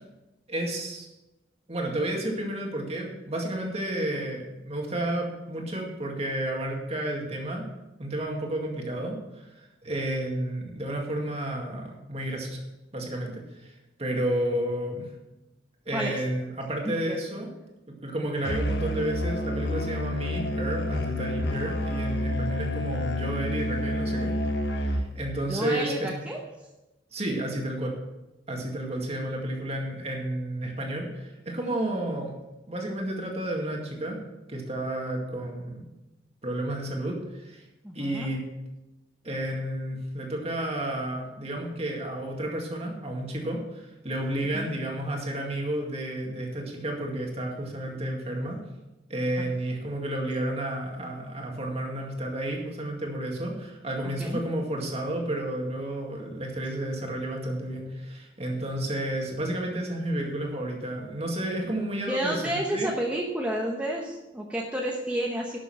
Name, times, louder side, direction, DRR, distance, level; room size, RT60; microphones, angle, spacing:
voice 1, 0.5-1.1 1.7-7.7 8.0-12.6 12.9-13.7 14.0-15.1 15.9-17.5 18.0-24.3 24.7-26.1 27.1-28.0 28.5-32.3 32.7-34.2 34.5-35.8 36.4-37.6 37.9-38.4 39.2-48.6 49.1-62.9, right 1 dB, 35° right, 0 dB, 2.1 m, -31 dB
voice 2, 16.8-17.2 25.5-26.4 37.8-38.3 44.5-44.7 54.0-54.4 62.1-65.6, right 1 dB, 5° right, -2 dB, 1.0 m, -30 dB
Musical instrument, 18.4-25.2, left 1 dB, 60° left, 0.9 m, -29 dB
11.5 x 6.8 x 6.1 m, 1.0 s
head